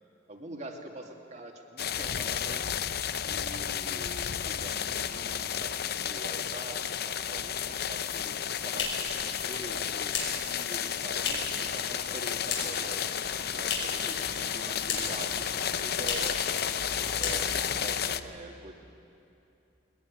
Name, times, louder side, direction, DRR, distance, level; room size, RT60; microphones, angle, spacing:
voice 1, 0.3-2.6 3.2-13.0 13.5-16.4 17.2-18.7, right 1 dB, 40° right, 2 dB, 2.5 m, -44 dB
sound 1, 1.8-18.2, left 9 dB, 55° left, 0.7 m, -32 dB
sound 2, 4.4-18.0, right 1 dB, 80° right, 4.6 m, -47 dB
sound 3, 8.8-11.7 11.9-12.9 13.2-14.1 14.4-15.3 15.6-15.7 16.0-16.4 16.7-16.9 17.1-17.8, left 5 dB, 75° left, 6.0 m, -35 dB
22.0 x 20.5 x 9.8 m, 2.8 s
head